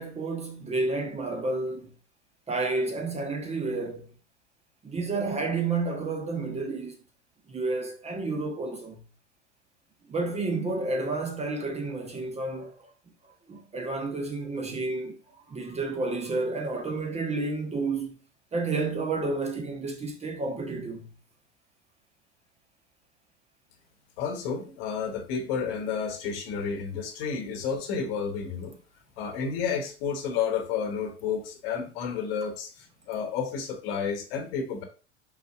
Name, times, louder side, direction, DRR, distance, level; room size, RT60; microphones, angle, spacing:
voice 1, 0.0-1.9 2.5-4.1 4.8-7.0 7.5-9.0 10.1-12.9 13.5-15.2 15.5-18.2 18.5-21.1, right 3 dB, 20° right, 0.9 m, -30 dB
voice 2, 24.2-28.8 29.2-34.8, left 6 dB, 55° left, 1.2 m, -31 dB
5.4 x 4.2 x 2.4 m
figure-of-eight pair, 80°, 36 cm